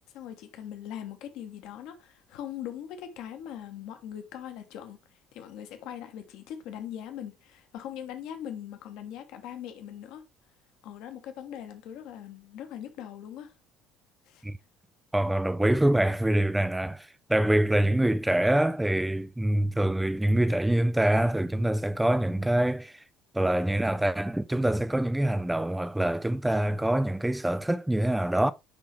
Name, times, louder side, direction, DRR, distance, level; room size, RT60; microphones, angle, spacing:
voice 1, 0.1-10.2 10.8-13.5 14.3-14.4, left 10 dB, 55° left, 1.0 m, -41 dB
voice 2, 15.1-23.0 23.3-28.5, right 1 dB, 5° right, 0.3 m, -25 dB
9.8 x 3.6 x 3.1 m
figure-of-eight pair, 55°, 0 cm